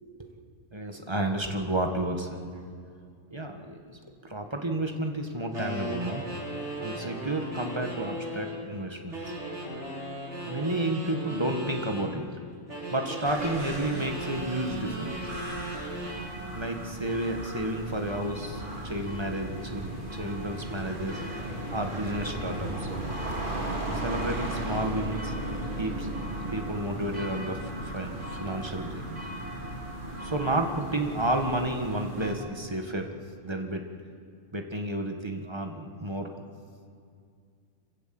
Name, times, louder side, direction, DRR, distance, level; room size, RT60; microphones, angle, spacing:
voice 1, 0.7-2.5 3.3-6.3 6.8-9.3 10.4-12.3 12.9-15.2 15.8-16.2 16.5-21.2 21.7-22.9 23.9-25.3 25.8-26.1 26.5-29.0 30.2-33.1 33.4-33.8 34.5-36.3, right 1 dB, 20° right, 4 dB, 1.6 m, -31 dB
sound 1, 5.5-8.6 9.1-12.1 12.7-16.2, right 1 dB, 55° right, 5.3 m, -37 dB
sound 2, 13.2-32.3, right 1 dB, 35° right, 2.9 m, -36 dB
26.0 x 15.5 x 7.7 m, 2.3 s
omnidirectional pair, 1.4 m